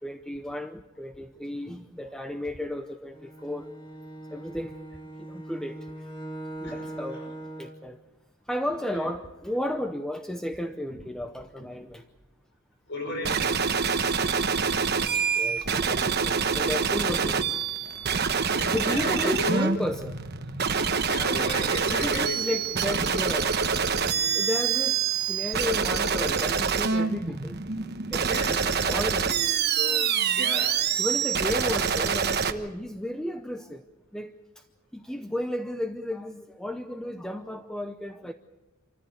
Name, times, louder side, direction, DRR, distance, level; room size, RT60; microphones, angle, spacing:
voice 1, 0.0-3.7 4.3-4.8 5.0-6.1 6.6-7.2 7.6-8.0 8.4-12.0 15.1-17.5 18.3-18.4 18.7-20.2 21.9-23.6 24.3-27.6 28.1-29.4 29.6-30.1 31.0-33.8 34.1-34.6 34.9-38.3, left 1 dB, 5° left, 0.7 m, -33 dB
Bowed string instrument, 3.1-7.9, right 1 dB, 20° left, 1.4 m, -40 dB
voice 2, 12.9-13.5 18.6-19.6 21.1-22.6 24.1-24.2 28.3-28.7 30.3-30.8, left 1 dB, 50° left, 5.3 m, -34 dB
sound 1, 13.2-32.5, right 6 dB, 45° right, 1.1 m, -26 dB
26.5 x 14.5 x 8.2 m
head